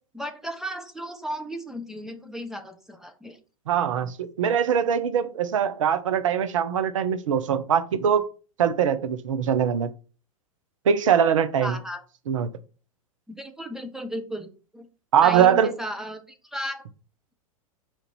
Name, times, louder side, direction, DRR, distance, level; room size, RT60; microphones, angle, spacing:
voice 1, 0.0-3.4 11.6-12.0 13.3-14.9 15.2-16.8, equal, 5° right, 0.5 m, -35 dB
voice 2, 3.7-8.2 8.6-9.9 10.9-11.8 12.3-12.5 15.1-15.7, right 8 dB, 60° right, 0.6 m, -22 dB
4.4 x 2.5 x 4.4 m
figure-of-eight pair, 95°, 18 cm